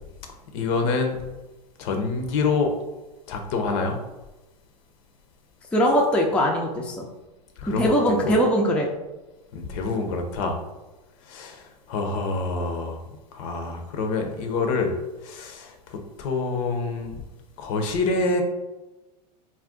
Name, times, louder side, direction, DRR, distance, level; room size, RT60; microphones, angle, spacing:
voice 1, 0.5-1.2 1.8-2.7 3.3-4.0 7.6-8.4 9.5-10.6 11.2-13.0 13.3-14.9 15.2-17.1 17.6-18.4, left 3 dB, 55° left, 4 dB, 0.6 m, -26 dB
voice 2, 5.7-7.1 7.7-8.9, equal, 5° left, -1 dB, 0.4 m, -21 dB
2.5 x 2.2 x 3.6 m, 1.1 s
hypercardioid pair, 110°, 20 cm